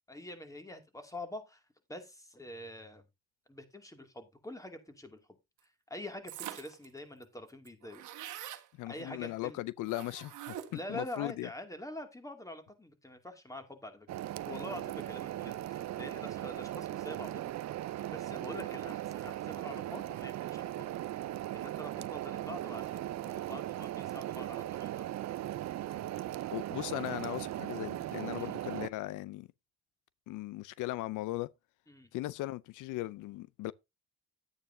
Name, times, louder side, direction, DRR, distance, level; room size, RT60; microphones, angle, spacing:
voice 1, 0.1-1.6 1.9-3.0 3.5-5.2 5.6-8.0 8.9-9.6 10.7-14.1 14.4-17.5 18.1-20.9 21.1-25.2 28.4-28.5 31.9-32.1, left 1 dB, 10° left, 2.4 m, -46 dB
sound 1, 6.3-6.8 7.2-7.3 7.5-8.7 9.9-10.9, right 12 dB, 80° right, 1.5 m, -44 dB
voice 2, 8.8-11.5 26.5-29.5 30.3-31.5 32.1-33.7, left 17 dB, 90° left, 0.5 m, -38 dB
sound 2, 14.1-28.9, right 13 dB, 65° right, 0.6 m, -38 dB
11.0 x 8.9 x 2.7 m
cardioid pair, 90°, 30 cm